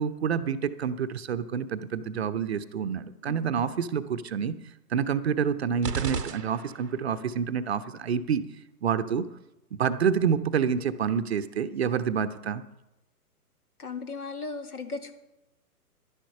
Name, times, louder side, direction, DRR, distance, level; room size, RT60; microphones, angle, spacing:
voice 1, 0.0-4.5 4.9-8.5 8.8-9.3 9.7-12.6, right 7 dB, 45° right, 11 dB, 0.7 m, -28 dB
sound 1, 5.8-7.1, right 6 dB, 85° right, 0.7 m, -34 dB
voice 2, 13.8-15.1, left 4 dB, 70° left, 7 dB, 1.7 m, -36 dB
11.5 x 10.0 x 5.5 m, 0.95 s
figure-of-eight pair, 130°, 47 cm